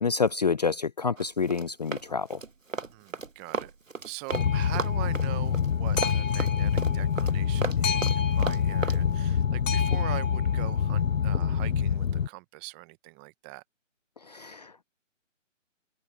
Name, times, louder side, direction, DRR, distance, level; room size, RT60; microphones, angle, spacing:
voice 1, 0.0-2.4 14.2-14.8, left 5 dB, 35° left, 0.5 m, -28 dB
Run, 1.2-4.5 4.7-9.0, right 4 dB, 90° right, 1.4 m, -34 dB
voice 2, 2.9-3.7 4.0-13.6, right 24 dB, 10° right, 0.7 m, -42 dB
Boat Water vehicle, 4.3-12.3, left 7 dB, 80° left, 0.8 m, -26 dB
figure-of-eight pair, 145°, 38 cm